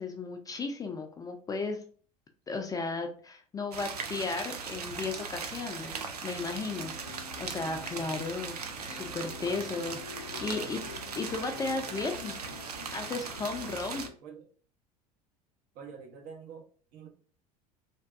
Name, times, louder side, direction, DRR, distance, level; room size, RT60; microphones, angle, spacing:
voice 1, 0.0-1.8 2.5-5.9 6.2-10.8 11.2-12.4 12.9-14.0, left 3 dB, 20° left, 4 dB, 0.4 m, -35 dB
sound 1, 3.7-14.1, right 5 dB, 85° right, 0.4 m, -39 dB
sound 2, 6.3-14.1, left 6 dB, 70° left, 0.6 m, -47 dB
voice 2, 9.4-9.7 10.5-10.8 14.2-14.5 15.7-17.1, right 6 dB, 50° right, 3 dB, 0.8 m, -47 dB
3.4 x 2.5 x 2.3 m, 0.43 s
figure-of-eight pair, 70°, 19 cm